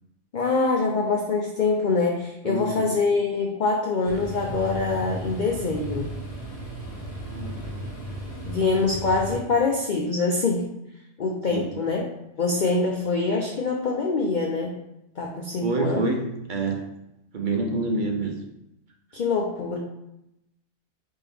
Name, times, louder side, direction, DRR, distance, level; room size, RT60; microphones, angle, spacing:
voice 1, 0.3-6.1 8.5-10.7 11.2-12.0 12.4-14.7 15.2-16.1 19.1-19.8, left 3 dB, 65° left, 0 dB, 0.4 m, -24 dB
voice 2, 2.4-2.9 7.3-7.9 11.5-11.8 15.6-16.9 17.3-18.4, right 3 dB, 50° right, 1 dB, 0.6 m, -28 dB
sound 1, 4.0-9.4, right 1 dB, 15° left, 0.8 m, -35 dB
4.3 x 3.5 x 3.4 m, 0.86 s
omnidirectional pair, 1.4 m